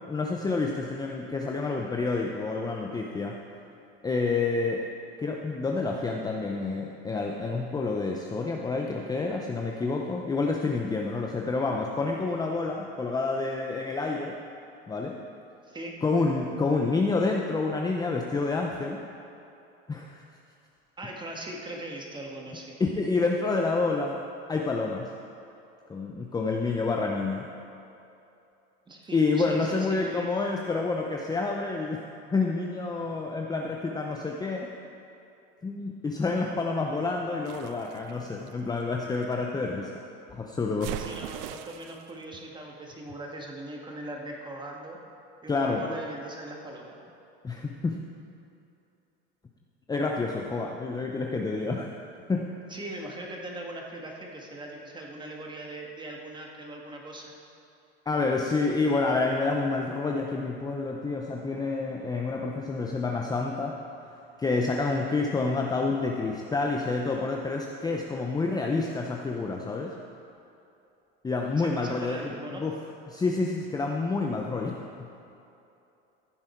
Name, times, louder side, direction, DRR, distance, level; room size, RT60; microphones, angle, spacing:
voice 1, 0.0-3.4 4.0-4.8 5.2-14.4 14.9-15.2 16.0-19.0 19.9-20.2 22.8-24.2 24.5-25.1 25.9-27.5 29.1-32.0 32.3-34.7 35.6-39.9 40.3-41.0 45.5-45.8 47.4-48.0 49.9-51.9 52.3-52.5 58.1-63.8 64.4-69.9 71.2-72.8 73.1-74.8, left 3 dB, 15° left, 1 dB, 0.7 m, -28 dB
voice 2, 15.6-16.0 21.0-22.8 28.9-30.3 41.0-45.0 45.4-47.0 50.5-50.8 52.7-57.3 71.6-72.6, right 1 dB, 15° right, -1 dB, 1.8 m, -40 dB
sound 1, 37.5-39.3 40.8-42.1, right 13 dB, 70° right, 0.5 m, -40 dB
14.5 x 7.5 x 4.5 m, 2.7 s
supercardioid pair, 110°, 29 cm